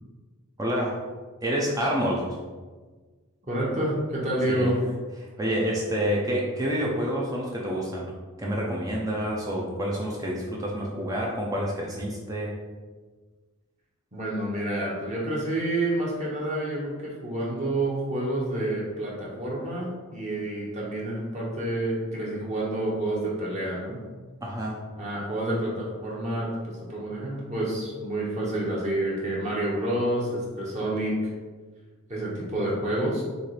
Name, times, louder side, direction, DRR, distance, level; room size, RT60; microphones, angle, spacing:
voice 1, 0.6-1.0 1.4-2.2 4.5-4.7 5.2-8.1 8.4-12.5 24.4-24.8, equal, 15° right, -3 dB, 0.5 m, -28 dB
voice 2, 3.5-4.8 10.8-11.1 14.1-24.0 25.0-31.2 32.1-33.2, right 1 dB, 30° right, -5 dB, 1.0 m, -29 dB
6.6 x 2.5 x 3.2 m, 1.4 s
head